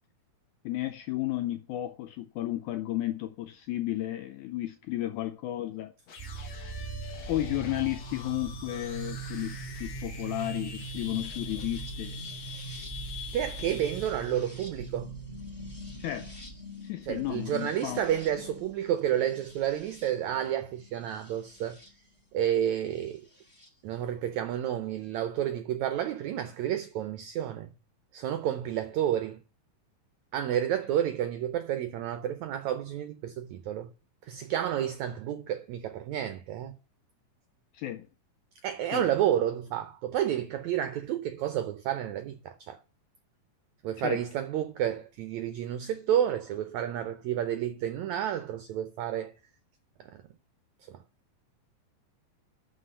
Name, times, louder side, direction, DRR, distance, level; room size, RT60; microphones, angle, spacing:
voice 1, 0.6-5.9 7.3-12.2 16.0-16.3 16.8-18.0 37.7-38.1 38.9-39.1 44.0-44.2, left 15 dB, 80° left, 1.8 m, -33 dB
sound 1, 6.1-14.3, left 6 dB, 50° left, 2.4 m, -45 dB
sound 2, 6.2-21.9 23.1-23.7, right 4 dB, 20° left, 0.8 m, -42 dB
voice 2, 13.3-15.1 17.0-21.8 22.3-23.2 23.8-27.7 28.1-29.4 30.3-33.9 34.2-36.8 38.6-42.8 43.8-49.3 50.0-50.2 50.8-51.0, right 10 dB, 85° right, 1.6 m, -30 dB
11.5 x 4.3 x 6.8 m
omnidirectional pair, 4.1 m